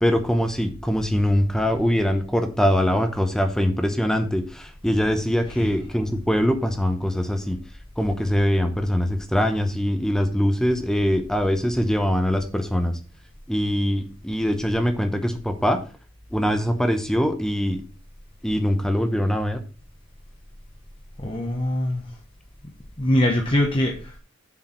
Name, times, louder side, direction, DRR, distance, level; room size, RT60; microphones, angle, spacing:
voice 1, 0.0-7.6 8.0-13.0 13.5-15.8 16.3-17.8 18.4-19.6, equal, 5° left, 6 dB, 1.0 m, -22 dB
voice 2, 21.2-22.1 23.0-24.2, left 1 dB, 25° left, 0 dB, 1.2 m, -23 dB
7.5 x 4.8 x 5.8 m, 0.34 s
head